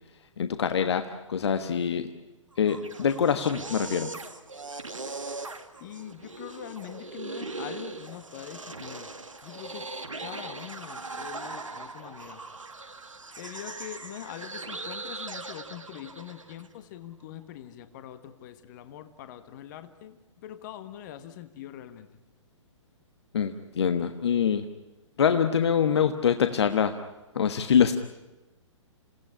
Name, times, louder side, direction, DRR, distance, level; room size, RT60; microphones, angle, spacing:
voice 1, 0.4-2.1 2.6-4.1 23.3-24.7 25.2-27.0 27.3-27.9, left 7 dB, 55° left, 9 dB, 1.3 m, -24 dB
sound 1, 2.5-16.7, right 3 dB, 80° right, 1.9 m, -40 dB
voice 2, 5.8-9.1 9.4-9.9 10.2-12.4 13.4-22.1, left 11 dB, 35° left, 11 dB, 1.4 m, -43 dB
28.0 x 17.0 x 9.9 m, 1.1 s
figure-of-eight pair, 120°, 16 cm